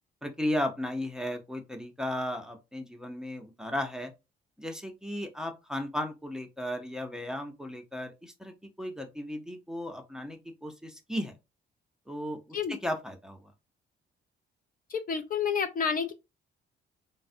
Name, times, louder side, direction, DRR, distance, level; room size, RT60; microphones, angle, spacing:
voice 1, 0.2-4.1 4.6-11.3 12.1-13.5, left 1 dB, 5° right, 0.6 m, -35 dB
voice 2, 14.9-16.1, left 6 dB, 45° left, 0.4 m, -29 dB
3.3 x 2.1 x 2.6 m
cardioid pair, 90°, 20 cm